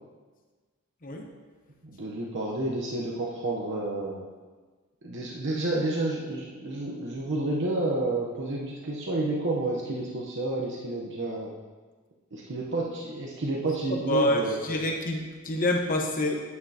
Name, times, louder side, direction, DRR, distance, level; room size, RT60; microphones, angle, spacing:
voice 1, 1.8-4.2 5.0-11.5 12.3-14.6, right 2 dB, 55° right, -3 dB, 1.0 m, -30 dB
voice 2, 14.1-16.4, left 1 dB, 40° left, 1 dB, 1.1 m, -27 dB
9.8 x 9.6 x 2.9 m, 1.4 s
head